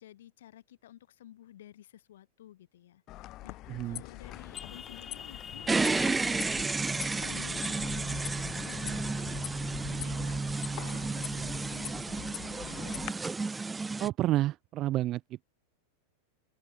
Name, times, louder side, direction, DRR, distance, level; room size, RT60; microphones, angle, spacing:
voice 1, 0.0-8.2 8.6-9.1 9.8-10.4 10.7-12.1 12.5-12.9, left 12 dB, 60° left, 7.1 m, -52 dB
sound 1, 3.1-13.1, left 16 dB, 35° left, 4.5 m, -43 dB
voice 2, 3.7-4.0 14.0-15.4, right 15 dB, 35° right, 1.4 m, -30 dB
sound 2, 4.2-9.2, left 6 dB, 20° left, 6.9 m, -47 dB
sound 3, 5.7-14.1, right 3 dB, 10° right, 0.5 m, -32 dB
open air
figure-of-eight pair, 90°, 0 cm